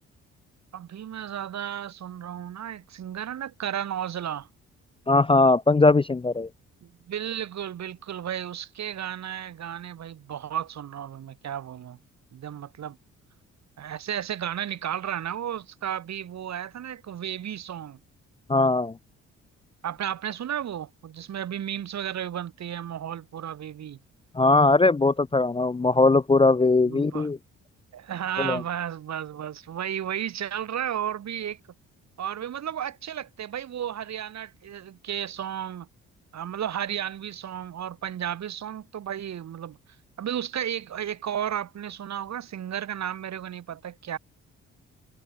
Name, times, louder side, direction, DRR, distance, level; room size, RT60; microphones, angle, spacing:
voice 1, 0.7-4.5 6.8-12.0 12.3-13.0 13.8-18.0 19.8-24.0 26.8-27.3 27.9-31.6 32.2-35.9 36.3-39.8 40.2-44.2, right 10 dB, 50° right, 1.3 m, -33 dB
voice 2, 5.1-6.5 18.5-18.9 24.4-27.4 28.4-28.6, left 3 dB, 15° left, 0.6 m, -20 dB
hypercardioid pair, 45°, 34 cm